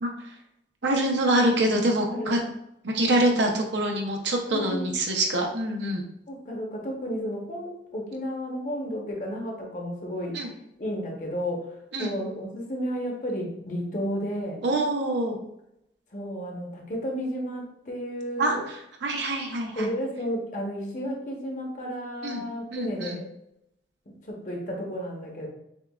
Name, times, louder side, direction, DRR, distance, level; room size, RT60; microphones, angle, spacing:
voice 1, 0.0-0.3 0.8-2.4 2.8-6.0 10.3-10.5 11.9-12.1 14.6-15.4 18.4-19.9 22.2-22.4 22.7-23.2, right 1 dB, 80° right, 1 dB, 0.8 m, -25 dB
voice 2, 2.1-2.4 4.5-4.9 6.3-10.4 10.8-11.6 12.0-14.6 16.1-18.6 19.8-23.3 24.2-25.5, equal, 45° left, 0 dB, 0.9 m, -32 dB
6.5 x 2.4 x 2.3 m, 0.80 s
head